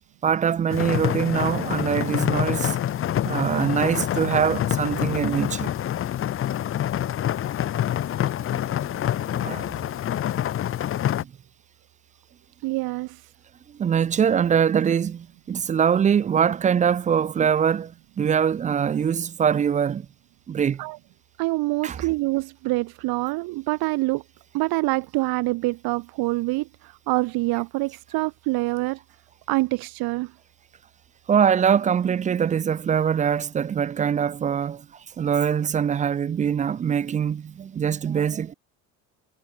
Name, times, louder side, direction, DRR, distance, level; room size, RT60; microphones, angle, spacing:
voice 1, 0.2-2.8 3.2-5.7 9.3-9.7 11.2-11.3 13.7-20.1 20.5-20.8 21.8-22.0 31.3-38.5, right 8 dB, 20° right, 0.4 m, -23 dB
sound 1, 0.7-11.2, left 11 dB, 35° left, 1.0 m, -26 dB
voice 2, 12.6-13.3 20.8-21.0 21.4-24.2 24.5-29.0 29.5-30.3, right 22 dB, 75° right, 2.2 m, -26 dB
cardioid pair, 145°, 37 cm